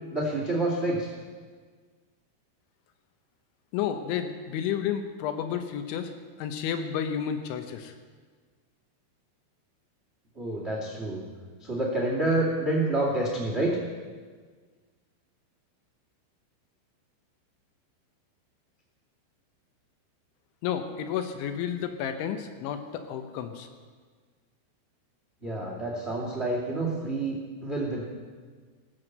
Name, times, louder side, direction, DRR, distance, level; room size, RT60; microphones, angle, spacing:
voice 1, 0.1-1.1 10.3-11.2 11.6-13.8 25.4-28.0, right 2 dB, 85° right, -2 dB, 0.5 m, -28 dB
voice 2, 3.7-6.1 6.4-7.9 20.6-23.7, left 8 dB, 75° left, 7 dB, 3.1 m, -31 dB
19.5 x 7.9 x 7.9 m, 1.6 s
omnidirectional pair, 5.9 m